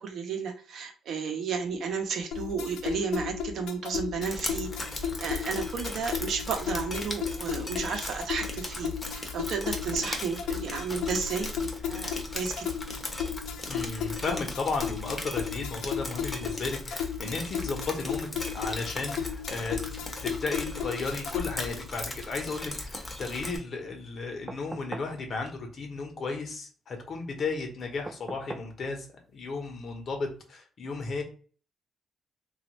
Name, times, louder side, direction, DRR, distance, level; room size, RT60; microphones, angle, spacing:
voice 1, 0.0-4.7 5.0-12.7, right 5 dB, 70° right, 4 dB, 0.7 m, -33 dB
sound 1, 2.3-21.9, left 8 dB, 85° left, 0.4 m, -35 dB
Drip, 4.2-23.6, left 2 dB, 25° left, 0.7 m, -38 dB
voice 2, 13.7-19.8 20.2-31.2, left 3 dB, 55° left, 3 dB, 0.9 m, -34 dB
sound 2, 24.5-25.2 28.1-28.8 30.4-30.5, right 2 dB, 25° right, 0.4 m, -40 dB
2.9 x 2.4 x 2.9 m, 0.40 s
cardioid pair, 90°, 0 cm